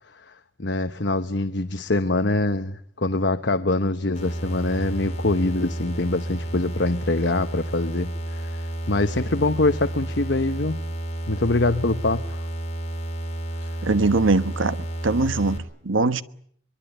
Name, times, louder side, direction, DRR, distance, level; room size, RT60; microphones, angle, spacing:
voice 1, 0.6-10.8 11.3-12.4, left 2 dB, 60° left, 1.0 m, -24 dB
sound 1, 4.2-15.6, right 1 dB, 35° left, 4.6 m, -31 dB
voice 2, 13.8-16.2, right 3 dB, 80° right, 1.2 m, -22 dB
24.0 x 23.5 x 8.9 m
head